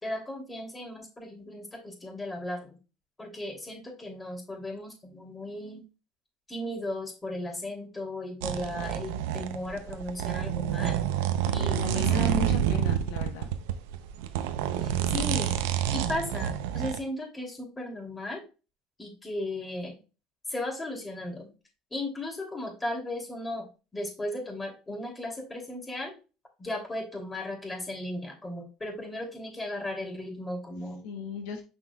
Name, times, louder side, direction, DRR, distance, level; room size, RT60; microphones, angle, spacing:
voice 1, 0.0-2.7 3.2-5.8 6.5-11.0 11.5-11.7 12.1-12.6 14.8-15.6 15.9-18.4 19.0-20.0 20.5-21.5 21.9-23.7 23.9-26.1 26.6-31.0, left 1 dB, 15° left, 1 dB, 3.0 m, -36 dB
sound 1, 8.4-17.0, right 10 dB, 80° right, 0.7 m, -28 dB
voice 2, 11.5-13.5 31.0-31.6, left 4 dB, 75° left, 4 dB, 1.2 m, -35 dB
7.0 x 5.8 x 2.3 m, 0.32 s
supercardioid pair, 90°, 0 cm